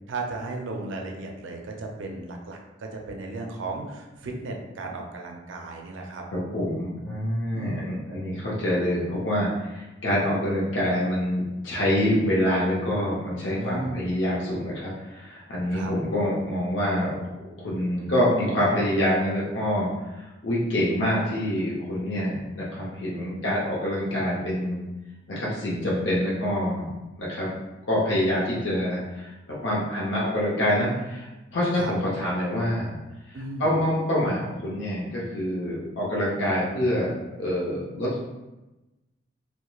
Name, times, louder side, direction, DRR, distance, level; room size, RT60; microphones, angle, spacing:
voice 1, 0.1-6.2 7.5-7.9 13.6-14.1 15.7-15.9 31.7-31.9 33.3-33.7, right 2 dB, 80° right, 1 dB, 0.4 m, -35 dB
voice 2, 6.3-17.3 17.6-24.8 25.3-26.9 27.2-27.5 27.9-32.9 33.6-38.2, equal, 70° left, -6 dB, 0.6 m, -26 dB
2.2 x 2.1 x 3.0 m, 1.0 s
head